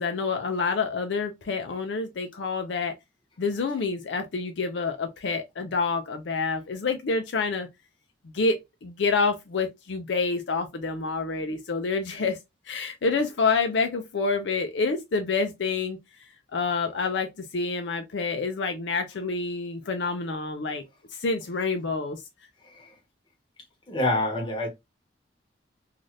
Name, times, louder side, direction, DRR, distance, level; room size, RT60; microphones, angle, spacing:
voice 1, 0.0-2.9 3.4-7.7 8.3-12.4 12.7-16.0 16.5-17.3 17.5-20.8 21.2-22.2, left 4 dB, 70° left, 0.5 m, -27 dB
voice 2, 23.9-24.7, left 2 dB, 25° left, 1.0 m, -25 dB
2.7 x 2.4 x 3.1 m
head